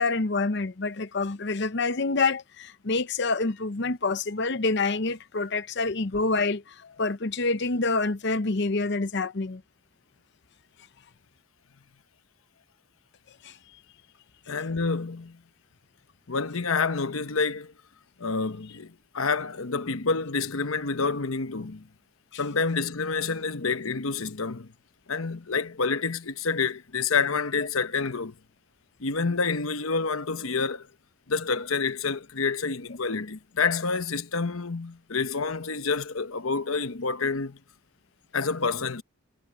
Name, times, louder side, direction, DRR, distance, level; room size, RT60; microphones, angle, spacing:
voice 1, 0.0-9.6 13.4-13.6, left 3 dB, 55° left, 0.8 m, -27 dB
voice 2, 14.5-15.4 16.3-17.7 18.2-21.9 22.3-24.7 25.1-28.3 29.0-30.9 31.3-37.6 38.3-39.0, left 4 dB, 85° left, 1.0 m, -28 dB
head